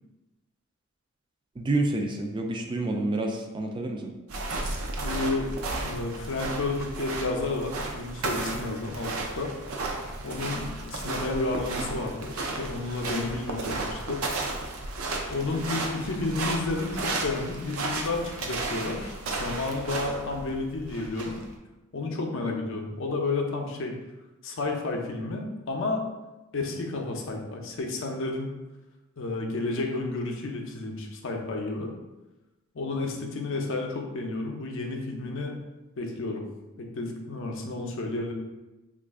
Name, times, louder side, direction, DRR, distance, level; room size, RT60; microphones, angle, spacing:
voice 1, 1.6-4.1, right 2 dB, 20° right, 2 dB, 0.3 m, -28 dB
sound 1, 4.3-21.5, right 2 dB, 75° right, 0.5 m, -33 dB
voice 2, 5.0-5.5 5.8-9.5 10.2-14.2 15.3-21.4 21.9-23.9 24.4-26.0 26.5-28.6 29.2-31.9 32.7-35.6 36.0-36.4 36.8-38.3, left 3 dB, 65° left, 2 dB, 0.5 m, -31 dB
3.1 x 2.4 x 3.5 m, 1.1 s
head